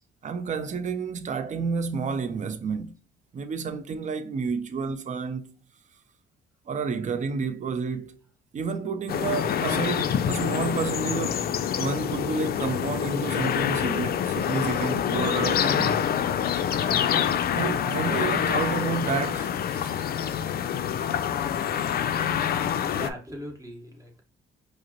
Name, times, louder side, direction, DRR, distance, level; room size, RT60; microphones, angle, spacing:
voice 1, 0.2-2.9 3.3-5.4 6.7-8.2 8.5-16.1 17.6-19.9, right 5 dB, 40° right, 0.5 m, -30 dB
sound 1, 9.1-23.1, left 9 dB, 50° left, 0.4 m, -26 dB
voice 2, 22.8-24.2, equal, 15° right, 1.2 m, -39 dB
4.9 x 2.0 x 2.9 m
cardioid pair, 90°, 20 cm